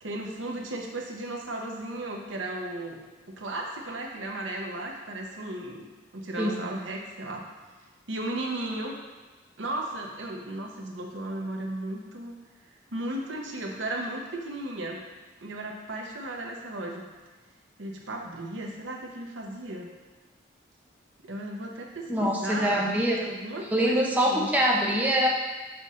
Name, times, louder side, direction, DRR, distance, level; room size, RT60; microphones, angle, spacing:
voice 1, 0.0-3.0 3.3-5.9 6.1-7.4 8.1-9.0 9.6-12.4 12.9-15.0 15.4-17.1 17.8-19.9 21.2-22.9 23.2-24.5, right 1 dB, 90° right, 1 dB, 0.9 m, -35 dB
voice 2, 22.1-23.2 23.7-25.3, equal, 10° right, -3 dB, 0.7 m, -24 dB
6.0 x 5.4 x 3.7 m, 1.3 s
head